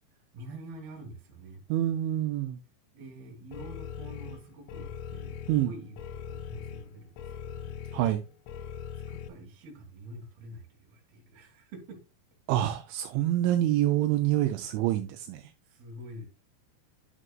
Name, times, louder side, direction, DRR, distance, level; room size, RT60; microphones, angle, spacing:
voice 1, 0.3-1.6 2.9-7.8 9.1-12.0 12.6-12.7 15.6-16.3, right 1 dB, 60° right, 3.5 m, -47 dB
voice 2, 1.7-2.6 5.5-5.7 7.9-8.2 12.5-15.5, right 13 dB, 85° right, 2.8 m, -26 dB
sound 1, 3.5-9.3, left 8 dB, 90° left, 3.3 m, -41 dB
10.5 x 6.3 x 2.4 m
omnidirectional pair, 5.6 m